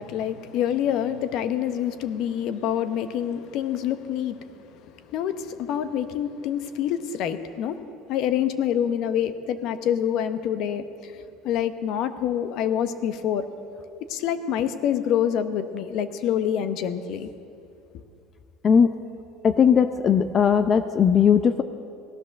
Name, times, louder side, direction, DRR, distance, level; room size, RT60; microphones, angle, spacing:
voice 1, 0.0-13.4 14.1-17.3, left 9 dB, 60° left, 10 dB, 0.9 m, -27 dB
voice 2, 19.4-21.6, left 7 dB, 35° left, 10 dB, 0.5 m, -18 dB
17.0 x 11.0 x 6.5 m, 2.5 s
supercardioid pair, 120°, 0 cm